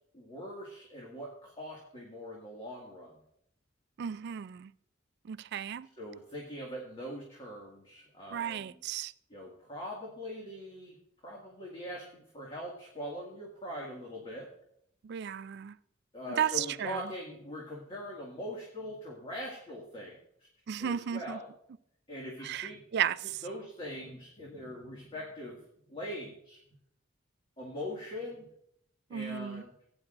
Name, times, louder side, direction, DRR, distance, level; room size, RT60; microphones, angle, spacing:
voice 1, 0.1-3.2 6.0-8.8 9.3-11.0 11.2-14.5 16.1-20.5 20.8-21.5 22.1-22.8 23.4-25.6 25.9-26.6 27.6-28.5 29.1-29.7, equal, 30° left, 2.0 m, -42 dB
voice 2, 4.0-4.7 5.2-5.9 8.3-9.1 15.0-15.8 16.4-17.0 20.7-21.4 22.4-23.4 29.1-29.6, right 9 dB, 60° right, 0.3 m, -34 dB
17.0 x 9.7 x 2.5 m
head